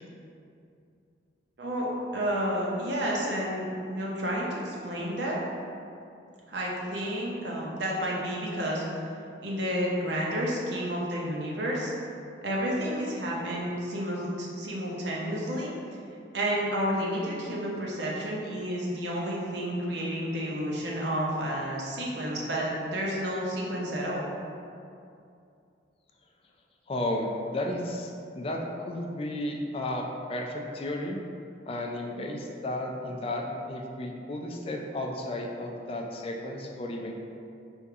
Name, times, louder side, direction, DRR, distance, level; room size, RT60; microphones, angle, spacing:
voice 1, 1.6-5.4 6.5-9.0 9.4-11.9 12.4-15.7 16.3-24.3, equal, 75° right, -4 dB, 0.8 m, -30 dB
voice 2, 26.9-31.2 31.7-37.1, left 1 dB, 35° left, 1 dB, 0.4 m, -33 dB
3.5 x 2.8 x 4.6 m, 2.5 s
head